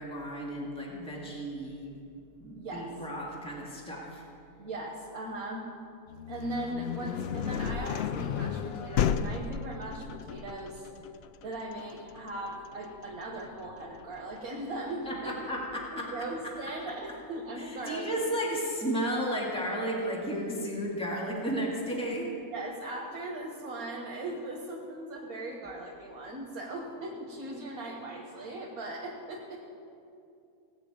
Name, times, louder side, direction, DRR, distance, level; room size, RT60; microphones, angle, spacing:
voice 1, 0.0-2.0 2.4-4.2 15.0-16.8 17.6-22.3, equal, 5° left, -3 dB, 1.9 m, -34 dB
voice 2, 2.6-2.9 4.6-5.7 6.3-10.9 11.4-15.3 15.9-18.3 22.5-29.6, right 1 dB, 90° right, -2 dB, 1.8 m, -39 dB
sound 1, 6.1-15.9, left 8 dB, 65° left, 0.6 m, -34 dB
17.0 x 5.9 x 8.7 m, 2.6 s
omnidirectional pair, 1.5 m